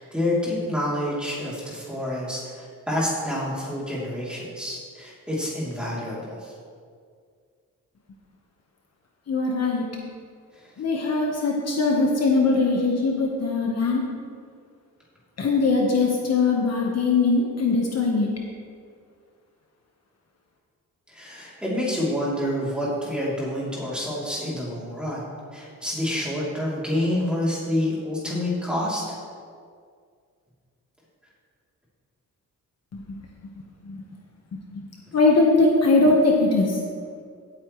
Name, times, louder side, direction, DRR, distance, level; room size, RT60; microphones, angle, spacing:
voice 1, 0.0-6.5 21.1-25.2 25.5-29.0, left 1 dB, 5° right, -7 dB, 3.1 m, -28 dB
voice 2, 9.3-9.8 10.8-14.0 15.4-18.3 32.9-33.2 33.9-34.0 34.8-34.9 35.1-36.7, left 3 dB, 50° left, -1 dB, 1.3 m, -21 dB
16.5 x 8.9 x 3.2 m, 2.1 s
wide cardioid pair, 155°, 32 cm